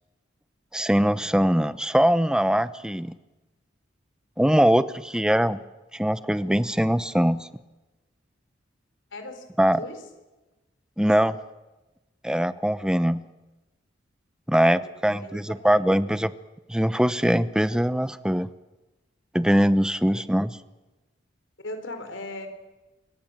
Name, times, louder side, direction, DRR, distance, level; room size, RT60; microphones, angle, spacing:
voice 1, 0.7-3.1 4.4-5.6 5.9-7.5 9.6-9.8 11.0-11.4 12.2-13.2 14.5-16.3 16.7-18.5 19.3-20.5, equal, 5° right, 14 dB, 0.8 m, -22 dB
voice 2, 9.1-9.4 9.8-10.0 14.8-15.4 15.7-16.1 20.1-20.2 21.6-22.5, left 2 dB, 70° left, 8 dB, 4.4 m, -38 dB
26.5 x 24.0 x 7.5 m, 1.1 s
head